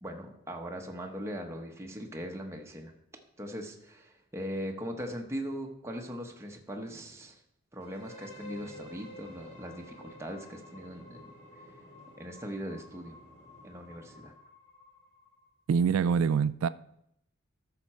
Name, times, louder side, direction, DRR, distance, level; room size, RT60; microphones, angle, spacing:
voice 1, 0.0-2.9 3.4-7.4 7.7-11.3 12.2-13.2 13.6-14.3, equal, 15° right, 1.0 m, -40 dB
sound 1, 7.8-15.6, left 1 dB, 65° left, 3.1 m, -52 dB
sound 2, 8.3-14.3, equal, 30° left, 3.0 m, -56 dB
voice 2, 15.7-16.7, right 6 dB, 70° right, 0.3 m, -25 dB
13.5 x 5.8 x 4.3 m
head